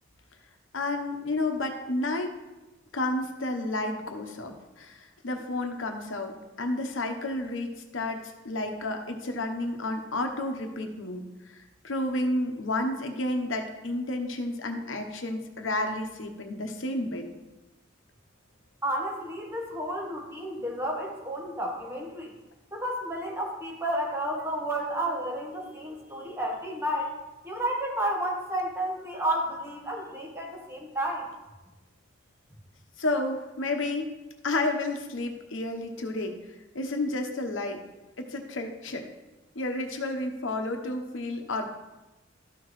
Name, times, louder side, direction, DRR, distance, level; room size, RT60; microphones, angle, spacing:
voice 1, 0.7-2.3 2.9-11.3 11.5-17.3 33.0-34.1 34.4-36.4 36.7-37.8 38.2-39.1 39.5-41.7, left 2 dB, 80° left, 4 dB, 1.0 m, -31 dB
voice 2, 18.8-22.3 22.7-27.1 27.4-31.2, right 1 dB, 15° right, -2 dB, 1.6 m, -31 dB
13.0 x 5.9 x 3.2 m, 1.1 s
head